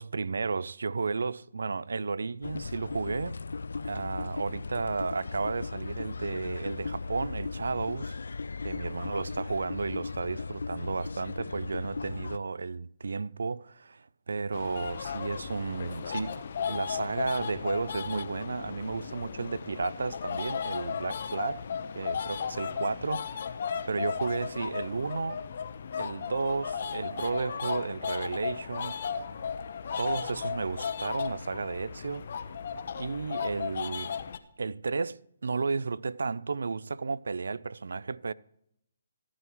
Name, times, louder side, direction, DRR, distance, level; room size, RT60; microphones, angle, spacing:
voice 1, 0.0-3.4 3.8-8.2 8.6-16.4 16.7-21.6 21.9-23.4 23.9-25.4 26.0-29.0 30.0-32.3 32.9-34.1 34.6-38.3, right 4 dB, 80° right, 0.4 m, -33 dB
sound 1, 2.4-12.4, left 4 dB, 85° left, 0.3 m, -37 dB
sound 2, 14.5-34.4, left 7 dB, 55° left, 0.8 m, -35 dB
15.0 x 11.0 x 3.0 m
hypercardioid pair, 155°, 0 cm